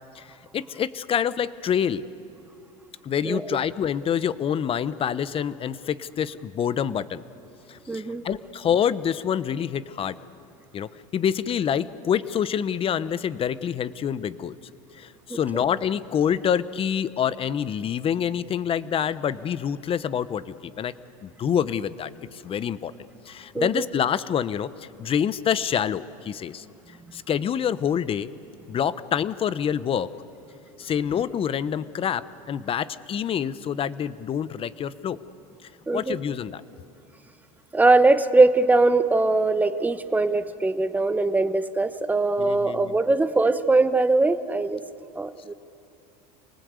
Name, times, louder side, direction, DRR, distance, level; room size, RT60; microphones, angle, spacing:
voice 1, 0.1-2.0 3.0-7.2 7.7-10.2 10.7-14.6 14.9-20.9 21.2-22.9 23.3-26.6 27.1-28.3 28.7-30.1 30.8-35.2 35.9-36.6 42.4-42.9, left 8 dB, 30° left, 16 dB, 0.8 m, -27 dB
voice 2, 7.9-8.2 15.3-15.6 23.5-23.9 35.9-36.2 37.7-44.8 45.2-45.5, right 3 dB, 10° right, 11 dB, 1.0 m, -21 dB
27.5 x 19.5 x 8.1 m, 2.7 s
supercardioid pair, 120°, 18 cm